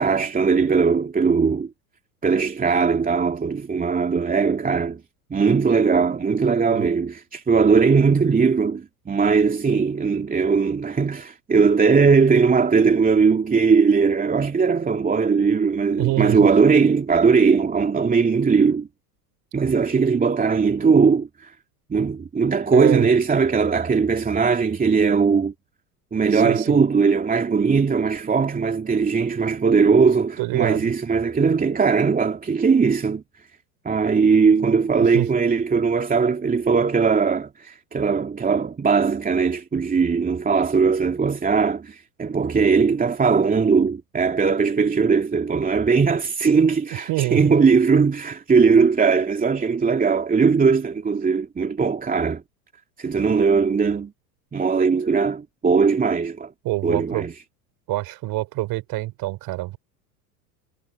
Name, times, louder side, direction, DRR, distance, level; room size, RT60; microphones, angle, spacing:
voice 1, 0.0-1.7 2.2-5.0 5.3-18.9 19.5-21.5 21.9-25.5 26.1-33.2 33.8-52.4 53.0-54.1 54.5-56.5 56.8-57.3, right 5 dB, 20° right, 2.7 m, -19 dB
voice 2, 16.0-16.5 22.7-23.1 26.3-26.8 30.4-30.9 35.1-35.3 47.1-47.5 56.6-57.3 57.9-59.8, right 18 dB, 50° right, 3.8 m, -25 dB
hypercardioid pair, 95°, 47 cm